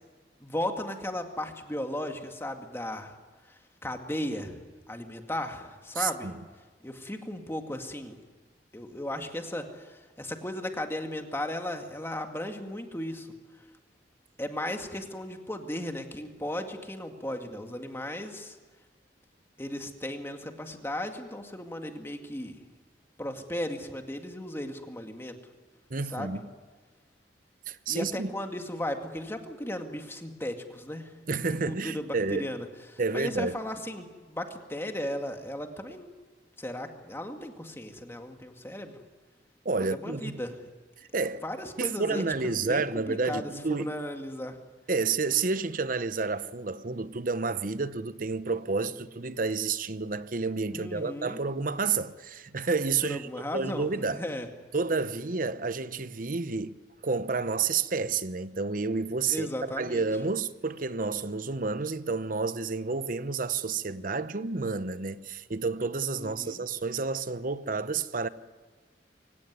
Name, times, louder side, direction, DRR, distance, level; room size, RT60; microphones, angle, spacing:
voice 1, 0.4-3.1 3.8-4.6 4.9-6.3 6.8-8.2 8.7-13.3 14.4-18.6 19.6-22.6 23.2-25.3 26.1-26.4 27.9-31.1 31.7-32.1 32.4-32.6 32.9-36.1 36.6-38.9 39.8-40.6 41.4-44.6 50.7-51.4 53.1-54.5 59.3-60.0 66.2-66.6, left 1 dB, 15° left, 2.0 m, -36 dB
voice 2, 5.9-6.4 25.9-26.5 27.7-28.3 31.3-32.5 33.0-33.6 39.6-40.4 41.1-41.4 41.8-43.9 44.9-54.3 54.7-56.8 57.0-68.3, right 4 dB, 50° right, 0.9 m, -30 dB
24.0 x 17.5 x 9.7 m
head